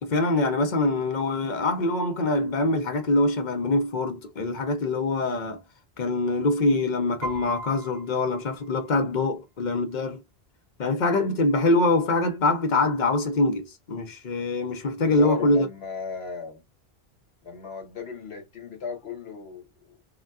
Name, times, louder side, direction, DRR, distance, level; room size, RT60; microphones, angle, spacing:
voice 1, 0.0-5.6 6.0-10.2 10.8-15.7, left 2 dB, 50° left, 0.7 m, -24 dB
Piano, 7.2-9.3, right 2 dB, 70° right, 2.0 m, -39 dB
voice 2, 15.0-16.6 17.4-20.0, left 5 dB, 70° left, 1.3 m, -36 dB
3.8 x 2.2 x 2.3 m
omnidirectional pair, 1.1 m